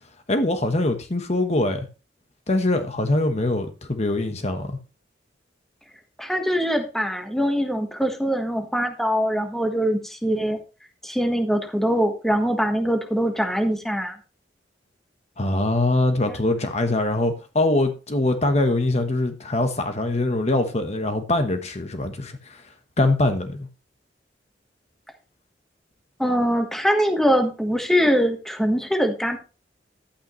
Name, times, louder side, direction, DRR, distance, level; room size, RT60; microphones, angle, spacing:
voice 1, 0.3-1.9 2.5-4.8 15.4-22.6 23.0-23.7, left 2 dB, 40° left, 1.1 m, -23 dB
voice 2, 6.2-10.6 11.0-14.2 26.2-29.4, equal, ahead, 1.3 m, -23 dB
11.5 x 8.9 x 3.1 m
head